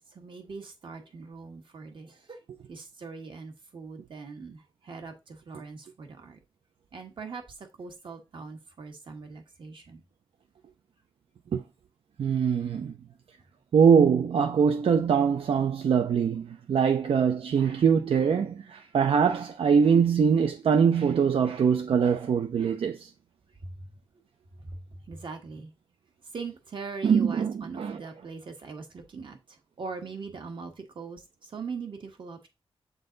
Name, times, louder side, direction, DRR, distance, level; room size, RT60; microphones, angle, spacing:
voice 1, 0.1-2.4 2.7-6.4 6.9-10.0 23.6-23.9 24.6-25.7 26.3-32.5, right 4 dB, 60° right, 1.5 m, -41 dB
voice 2, 12.2-12.9 13.7-23.1 27.0-28.0, right 6 dB, 80° right, 0.5 m, -23 dB
7.7 x 3.9 x 3.9 m
wide cardioid pair, 165°, 10 cm